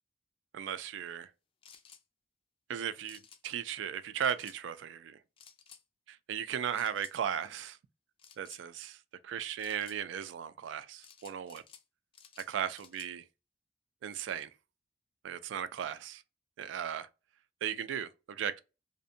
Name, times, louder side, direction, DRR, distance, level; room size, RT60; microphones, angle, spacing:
voice 1, 0.5-1.3 2.7-5.2 6.1-7.8 8.4-9.0 9.2-11.6 12.5-13.3 14.0-14.5 15.2-16.2 16.6-17.1 17.6-18.6, right 8 dB, 80° right, 0.3 m, -36 dB
sound 1, 1.6-2.0 3.0-3.4 4.2-4.6 5.4-5.8 6.7-7.1 8.2-8.6 9.6-10.0 11.0-11.8 12.1-13.1, left 7 dB, 30° left, 0.3 m, -55 dB
2.5 x 2.1 x 2.6 m
head